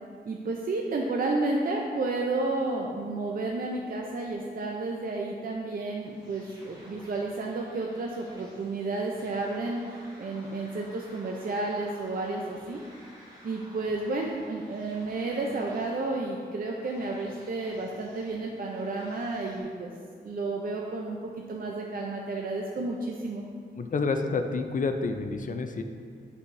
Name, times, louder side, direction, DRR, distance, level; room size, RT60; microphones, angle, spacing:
voice 1, 0.2-12.8 13.4-19.9 20.2-21.2 21.5-23.4, right 2 dB, 50° right, 0 dB, 0.5 m, -31 dB
sound 1, 5.9-19.6, equal, 20° right, 1.5 m, -53 dB
voice 2, 23.8-25.8, left 4 dB, 45° left, 7 dB, 0.4 m, -29 dB
8.2 x 4.7 x 2.6 m, 2.1 s
wide cardioid pair, 135°, 19 cm